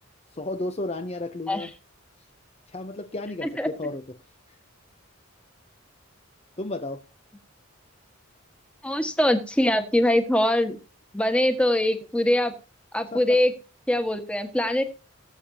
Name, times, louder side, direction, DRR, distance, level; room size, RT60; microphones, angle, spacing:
voice 1, 0.3-1.7 2.7-4.0 6.6-7.0 13.1-13.4, left 2 dB, 30° left, 7 dB, 0.8 m, -33 dB
voice 2, 8.8-10.8 11.1-12.5 12.9-13.5 13.9-14.8, left 1 dB, 5° left, 7 dB, 1.5 m, -23 dB
19.0 x 8.5 x 2.8 m, 0.33 s
head